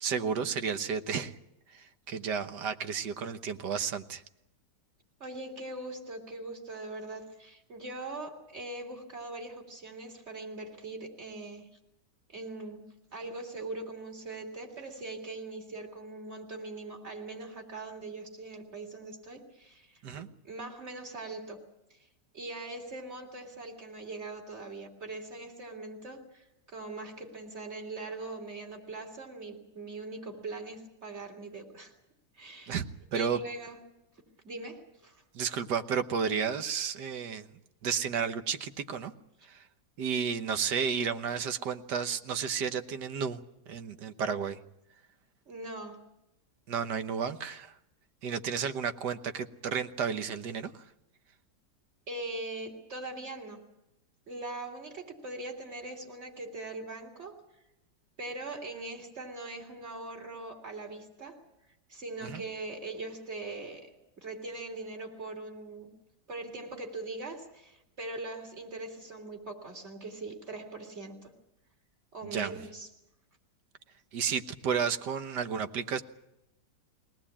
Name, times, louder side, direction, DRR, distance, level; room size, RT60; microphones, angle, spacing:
voice 1, 0.0-1.4 1.7-4.2 20.0-20.3 32.7-33.4 35.3-37.5 37.8-39.1 39.4-39.7 40.0-44.6 46.7-47.8 48.2-50.9 62.2-62.4 72.2-72.5 74.1-76.0, right 6 dB, 70° right, 10 dB, 1.7 m, -32 dB
voice 2, 5.2-11.7 12.3-12.8 13.1-20.0 20.4-21.6 21.9-22.0 22.3-31.9 32.3-32.8 33.1-33.8 34.4-35.2 45.5-46.0 52.1-53.6 54.3-57.4 58.2-61.4 61.9-65.9 66.3-71.3 72.1-72.9, right 2 dB, 35° right, 4 dB, 3.6 m, -41 dB
22.5 x 18.5 x 8.7 m, 0.86 s
omnidirectional pair, 2.0 m